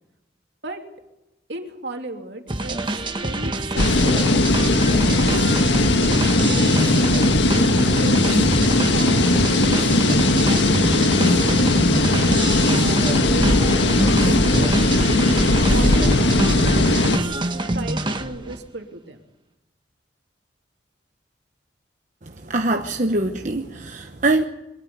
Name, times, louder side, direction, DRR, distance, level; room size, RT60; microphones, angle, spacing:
voice 1, 1.5-4.4 4.9-5.6 6.1-8.2 8.8-11.7 12.2-12.9 13.2-15.2 15.7-19.2, right 2 dB, 70° right, 3 dB, 3.1 m, -35 dB
sound 1, 2.5-18.6, right 1 dB, 25° right, 1.4 m, -26 dB
sound 2, 3.8-17.2, left 2 dB, 80° left, 1.7 m, -18 dB
voice 2, 22.2-24.4, right 2 dB, 45° right, 4 dB, 1.1 m, -23 dB
23.5 x 13.5 x 9.6 m, 0.96 s
head